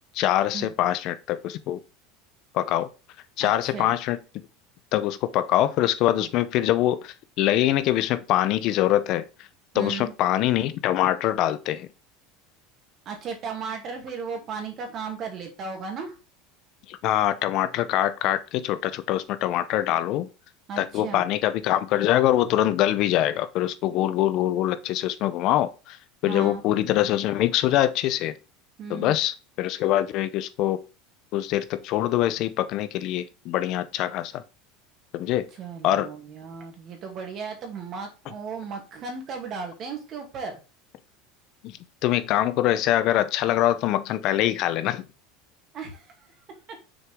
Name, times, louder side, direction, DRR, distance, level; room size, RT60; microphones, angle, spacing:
voice 1, 0.1-1.8 2.5-2.9 3.4-4.2 4.9-9.3 9.7-11.9 16.9-20.3 20.8-28.3 28.9-30.8 31.3-34.4 35.1-35.5 35.8-36.1 41.6-45.1, left 13 dB, 50° left, 0.6 m, -24 dB
voice 2, 3.4-3.9 6.2-6.3 9.7-10.0 13.1-16.2 20.7-21.3 26.3-26.6 28.8-29.1 35.6-40.6 45.7-46.3, right 5 dB, 40° right, 2.2 m, -35 dB
6.4 x 4.7 x 3.6 m
supercardioid pair, 135°, 0 cm